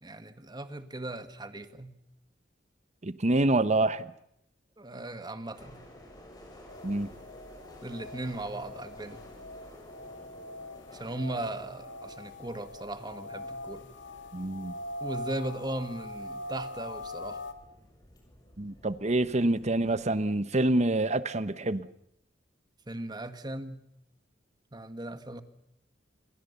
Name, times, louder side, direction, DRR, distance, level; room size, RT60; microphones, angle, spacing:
voice 1, 0.0-2.0 4.8-5.8 7.8-9.2 10.9-13.9 15.0-17.4 19.4-19.5 22.9-23.8 24.7-25.4, right 1 dB, 25° right, 1.6 m, -38 dB
voice 2, 3.0-4.1 6.8-7.1 14.3-14.7 18.6-21.9, right 2 dB, 40° right, 1.1 m, -26 dB
sound 1, 5.5-20.0, left 1 dB, 20° left, 6.9 m, -53 dB
sound 2, 6.7-17.5, left 1 dB, 90° left, 2.0 m, -42 dB
28.5 x 22.5 x 6.9 m
head